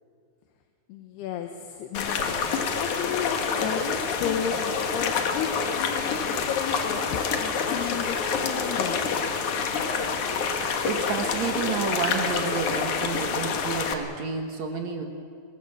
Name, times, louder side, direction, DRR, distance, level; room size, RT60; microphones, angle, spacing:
voice 1, 0.9-2.4 2.8-9.0, left 8 dB, 75° left, 5 dB, 3.0 m, -33 dB
sound 1, 1.9-13.9, left 5 dB, 60° left, 2.3 m, -27 dB
voice 2, 10.0-15.0, right 5 dB, 60° right, 3 dB, 2.0 m, -31 dB
25.5 x 19.5 x 7.2 m, 2.2 s
omnidirectional pair, 5.0 m